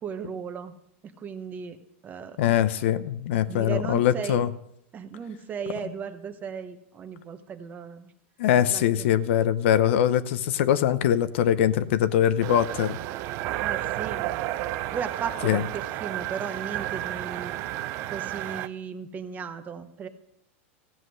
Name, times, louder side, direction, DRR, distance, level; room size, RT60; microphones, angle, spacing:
voice 1, 0.0-0.7 1.2-1.8 2.0-2.4 3.5-4.4 4.9-8.1 8.7-9.1 13.6-14.2 14.9-17.6 18.1-20.1, right 6 dB, 25° right, 9 dB, 1.1 m, -36 dB
voice 2, 2.4-4.5 8.4-13.0 15.4-15.6, left 10 dB, 70° left, 13 dB, 0.8 m, -22 dB
sound 1, 12.4-18.7, right 15 dB, 45° right, 0.6 m, -32 dB
15.5 x 7.7 x 6.3 m, 0.74 s
supercardioid pair, 130°, 7 cm